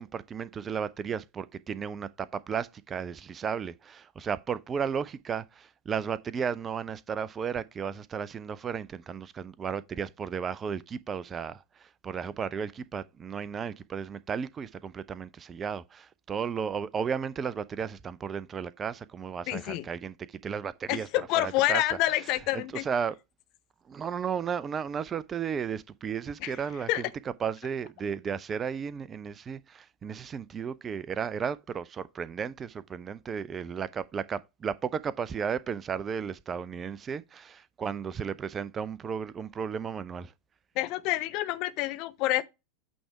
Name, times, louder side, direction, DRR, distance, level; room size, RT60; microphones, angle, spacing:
voice 1, 0.0-21.1 21.4-21.8 22.5-23.2 23.9-27.0 27.4-40.3, right 7 dB, 20° right, 0.4 m, -34 dB
voice 2, 19.5-19.8 20.9-22.8 26.4-26.5 26.9-27.0 40.8-42.4, left 16 dB, 40° left, 0.6 m, -28 dB
8.7 x 3.3 x 4.7 m
figure-of-eight pair, 90°, 0 cm